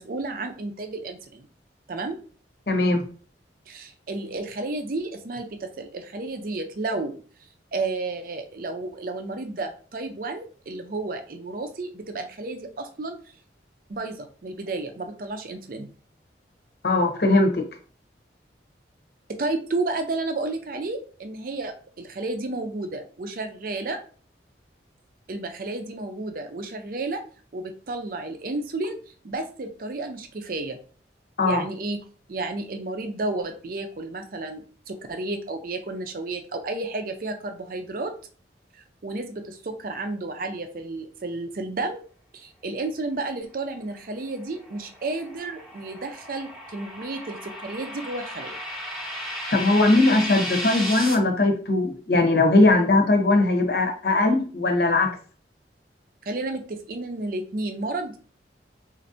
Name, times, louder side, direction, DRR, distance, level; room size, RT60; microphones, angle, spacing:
voice 1, 0.0-1.5 1.9-2.2 3.7-7.2 7.7-13.2 13.9-15.9 19.3-24.0 25.3-27.2 27.5-29.0 29.2-30.8 31.4-32.0 32.3-38.1 39.0-42.0 42.3-48.6 56.3-58.2, right 2 dB, 50° right, 6 dB, 0.5 m, -32 dB
voice 2, 2.7-3.0 16.8-17.6 31.4-31.6 49.5-55.1, left 2 dB, 60° left, 3 dB, 0.8 m, -20 dB
sound 1, 44.3-51.1, left 1 dB, 5° right, 0.7 m, -34 dB
4.2 x 2.5 x 2.6 m, 0.41 s
head